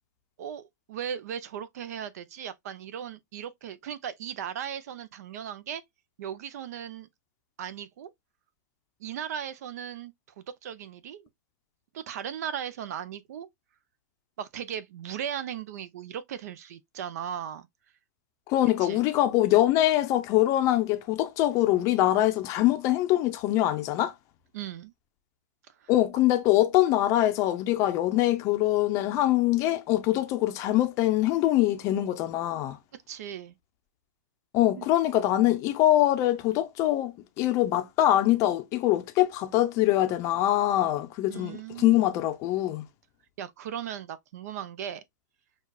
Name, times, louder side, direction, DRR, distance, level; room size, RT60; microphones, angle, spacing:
voice 1, 0.4-5.8 6.2-7.1 7.6-8.1 9.0-11.3 11.9-13.5 14.4-17.7 18.8-19.0 24.5-24.9 25.8-25.9 33.1-33.6 34.8-34.9 41.3-42.0 43.4-45.0, right 9 dB, 60° right, 0.6 m, -37 dB
voice 2, 18.5-24.1 25.9-32.8 34.5-42.9, left 14 dB, 30° left, 0.6 m, -24 dB
6.2 x 2.4 x 2.3 m
hypercardioid pair, 135°, 10 cm